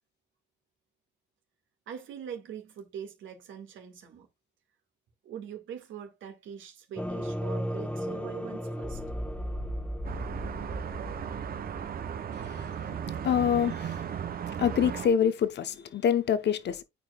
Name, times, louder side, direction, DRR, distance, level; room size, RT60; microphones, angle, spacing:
voice 1, 1.9-4.3 5.2-9.0, right 8 dB, 80° right, 1.9 m, -42 dB
sound 1, 7.0-12.6, equal, 5° left, 1.2 m, -35 dB
sound 2, 10.0-15.1, right 8 dB, 50° right, 0.7 m, -36 dB
voice 2, 12.3-14.0 14.6-16.8, left 8 dB, 60° left, 0.9 m, -27 dB
9.0 x 4.8 x 2.3 m
cardioid pair, 90°, 20 cm